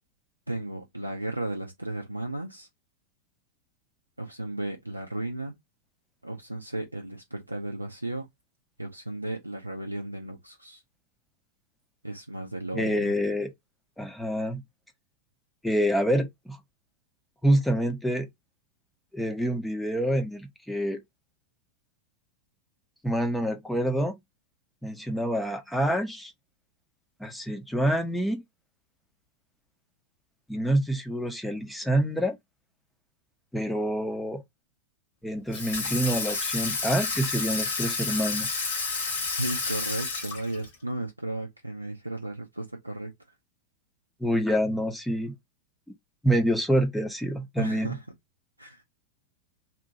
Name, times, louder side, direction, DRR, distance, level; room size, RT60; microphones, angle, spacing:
voice 1, 0.5-2.7 4.2-5.6 6.2-8.3 8.8-10.8 12.0-13.1 39.4-43.1 47.6-48.0 48.6-48.8, right 1 dB, 85° right, 0.4 m, -34 dB
voice 2, 12.7-13.5 14.0-14.6 15.6-16.6 17.4-18.3 19.1-21.0 23.0-24.1 24.8-26.3 27.2-28.4 30.5-32.4 33.5-34.4 35.2-38.6 44.2-45.3 46.2-48.0, equal, 5° left, 0.6 m, -27 dB
Water tap faucet / Sink (filling or washing), 35.5-40.7, left 4 dB, 55° left, 1.2 m, -30 dB
2.8 x 2.3 x 2.6 m
figure-of-eight pair, 90°, 0 cm